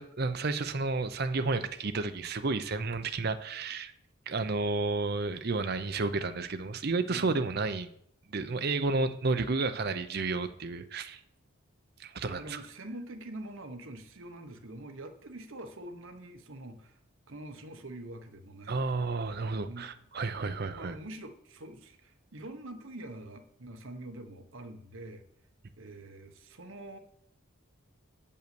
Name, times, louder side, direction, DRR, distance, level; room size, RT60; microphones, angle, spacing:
voice 1, 0.0-3.9 4.3-7.9 8.3-11.2 12.0-12.6 18.7-21.0, right 3 dB, 45° right, 10 dB, 0.6 m, -31 dB
voice 2, 7.1-7.5 8.4-8.5 12.3-17.0 17.3-19.9 20.7-25.2 25.8-27.0, right 1 dB, 65° right, 6 dB, 1.0 m, -45 dB
7.7 x 5.5 x 6.9 m, 0.67 s
head